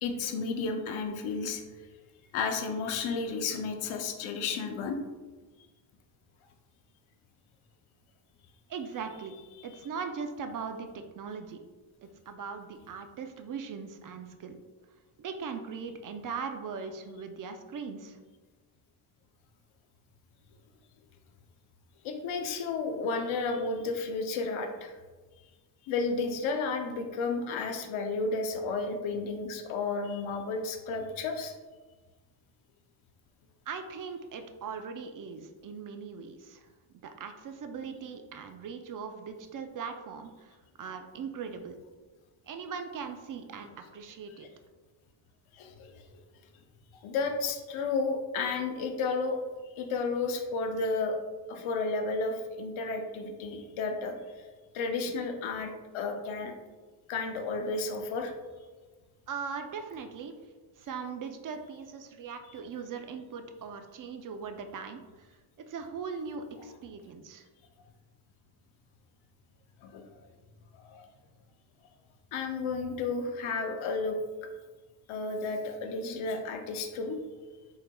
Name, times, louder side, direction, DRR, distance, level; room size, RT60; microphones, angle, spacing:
voice 1, 0.0-1.6 2.3-5.0 22.0-24.9 25.9-31.5 45.5-46.0 47.0-49.4 49.8-51.2 51.5-54.2 54.7-56.5 57.1-58.3 62.5-62.6 69.8-70.0 70.9-71.0 72.3-74.1 75.1-77.2, left 4 dB, 85° left, 5 dB, 0.7 m, -32 dB
voice 2, 8.7-9.4 9.6-11.6 12.3-14.6 15.2-18.2 33.7-36.7 37.0-41.8 42.5-44.5 59.3-60.3 60.8-65.3 65.7-67.4, right 5 dB, 45° right, 6 dB, 0.5 m, -40 dB
4.2 x 3.8 x 2.2 m, 1.3 s
cardioid pair, 95°, 47 cm